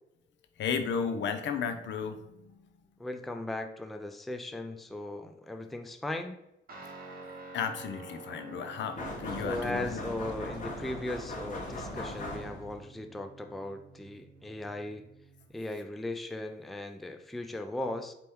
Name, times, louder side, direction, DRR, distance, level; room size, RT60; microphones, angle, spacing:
voice 1, 0.6-2.2 7.5-10.0, left 6 dB, 65° left, 7 dB, 0.6 m, -33 dB
voice 2, 3.0-6.4 9.4-15.1 15.5-18.1, left 1 dB, ahead, 6 dB, 0.4 m, -37 dB
Guitar, 6.7-15.5, right 2 dB, 50° right, 1.0 m, -49 dB
sound 1, 9.0-12.8, left 1 dB, 40° left, 1.1 m, -39 dB
4.2 x 2.9 x 3.5 m, 0.84 s
cardioid pair, 90°, 20 cm